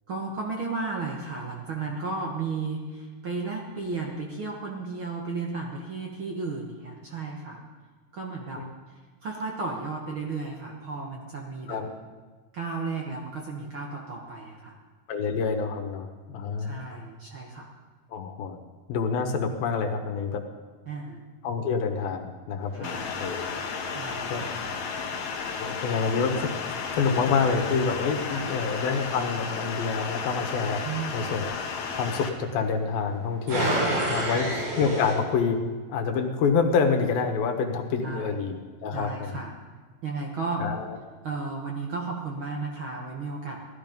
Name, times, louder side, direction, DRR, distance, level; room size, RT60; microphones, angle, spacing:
voice 1, 0.1-7.6 8.1-8.6 8.9-11.8 12.5-14.8 16.6-17.7 20.9-21.2 22.7-23.1 23.9-24.6 28.3-28.6 30.8-31.3 34.2-34.5 38.0-38.4 38.9-39.5 40.0-40.7 41.2-43.6, right 4 dB, 55° right, 0 dB, 1.5 m, -34 dB
voice 2, 15.1-16.1 16.3-16.8 18.1-18.6 18.9-20.4 21.4-23.6 24.3-24.5 25.6-30.8 31.1-31.6 32.0-33.7 34.1-34.5 34.8-35.6 35.9-39.4 40.6-41.0, left 5 dB, 90° left, 4 dB, 3.2 m, -27 dB
sound 1, 22.6-35.1, right 1 dB, 70° right, 5.1 m, -35 dB
sound 2, 22.8-32.3, left 6 dB, 60° left, 2.4 m, -33 dB
17.5 x 13.0 x 5.3 m, 1.4 s
omnidirectional pair, 4.0 m